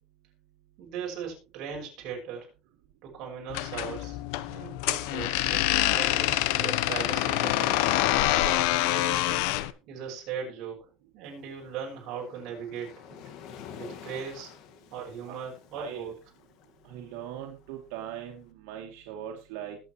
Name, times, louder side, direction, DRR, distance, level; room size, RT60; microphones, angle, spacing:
voice 1, 0.8-2.5 3.0-4.2 4.5-7.9 8.4-9.5 9.9-10.8 11.1-13.2 13.8-14.5 14.9-16.1, right 6 dB, 50° right, -1 dB, 6.1 m, -38 dB
sound 1, 3.5-9.7, left 15 dB, 75° left, 0.9 m, -26 dB
Waves surf, 11.2-18.4, left 8 dB, 55° left, 1.7 m, -49 dB
voice 2, 16.8-19.8, right 10 dB, 80° right, 1 dB, 2.5 m, -40 dB
20.5 x 8.2 x 3.1 m, 0.31 s
cardioid pair, 165°, 0 cm